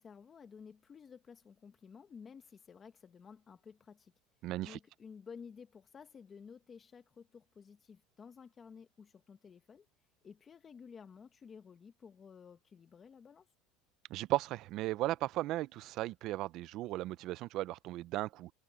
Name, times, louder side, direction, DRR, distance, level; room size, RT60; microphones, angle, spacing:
voice 1, 0.0-4.1 4.6-9.9 10.2-13.5, left 6 dB, 25° left, 1.3 m, -53 dB
voice 2, 4.4-4.8 14.1-18.5, right 16 dB, 50° right, 0.5 m, -36 dB
supercardioid pair, 140°, 0 cm